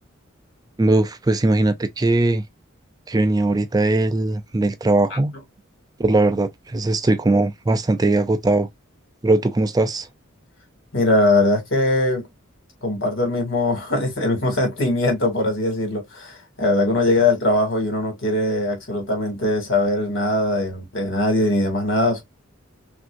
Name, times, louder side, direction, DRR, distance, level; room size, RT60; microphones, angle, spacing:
voice 1, 0.8-2.4 3.1-5.3 6.0-8.7 9.2-10.1, right 2 dB, 20° right, 0.4 m, -19 dB
voice 2, 10.9-12.2 12.8-22.2, left 1 dB, 65° left, 2.3 m, -21 dB
6.0 x 2.7 x 2.5 m
head